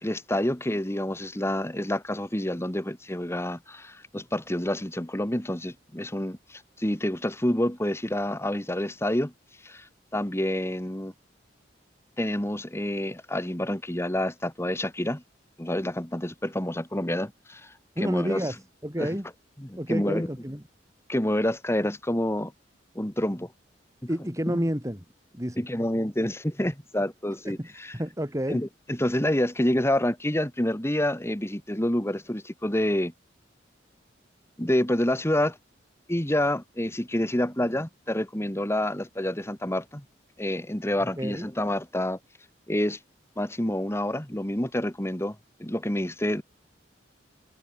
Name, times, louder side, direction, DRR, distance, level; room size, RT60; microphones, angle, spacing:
voice 1, 0.0-9.3 9.6-9.9 10.1-11.1 12.2-15.2 15.6-18.5 19.0-19.1 19.6-20.3 21.1-22.5 23.0-23.5 24.5-24.6 25.6-28.0 28.5-33.1 34.6-35.6 36.1-40.0 40.4-42.2 42.7-43.0 43.4-46.4, left 1 dB, 15° left, 2.0 m, -28 dB
voice 2, 17.9-18.6 18.8-19.3 19.8-20.6 24.1-25.0 25.3-25.6 27.4-28.6 41.0-41.5, equal, 15° right, 6.5 m, -30 dB
head